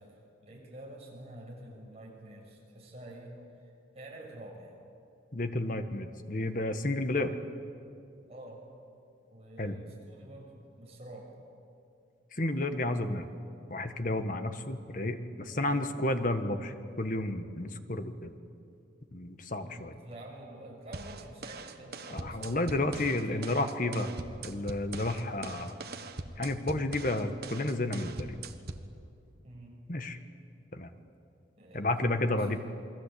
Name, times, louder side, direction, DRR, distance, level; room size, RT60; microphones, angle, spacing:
voice 1, 0.0-4.8 8.3-8.6 9.3-11.3 12.7-13.1 15.5-15.9 19.6-24.0 29.4-29.8 31.6-32.5, right 1 dB, 35° right, -2 dB, 7.0 m, -48 dB
voice 2, 5.3-7.3 9.6-9.7 12.3-13.3 13.7-18.3 19.1-19.9 22.1-24.1 24.4-25.7 26.4-28.4 29.9-30.2 30.7-30.9 31.7-32.6, left 2 dB, 45° left, 8 dB, 1.5 m, -31 dB
sound 1, 20.9-28.9, right 3 dB, 55° right, 1.5 m, -42 dB
28.5 x 22.0 x 8.5 m, 2.6 s
head